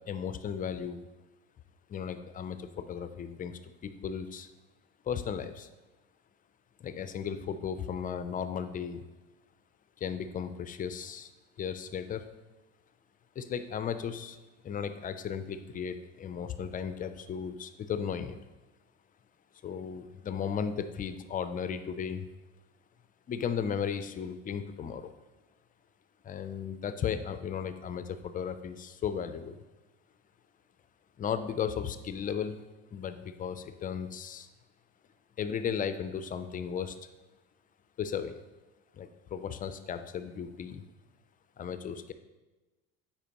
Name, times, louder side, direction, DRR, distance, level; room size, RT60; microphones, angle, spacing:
voice 1, 0.1-1.1 1.9-4.5 5.1-5.7 6.8-9.0 10.0-11.3 11.6-12.2 13.4-14.4 14.6-18.4 19.6-22.3 23.3-25.1 26.2-29.6 31.2-32.6 32.9-34.5 35.4-37.0 38.0-38.4 38.9-40.8 41.6-42.1, left 7 dB, 25° left, 10 dB, 0.4 m, -35 dB
9.0 x 4.4 x 2.9 m, 1.1 s
supercardioid pair, 100°, 31 cm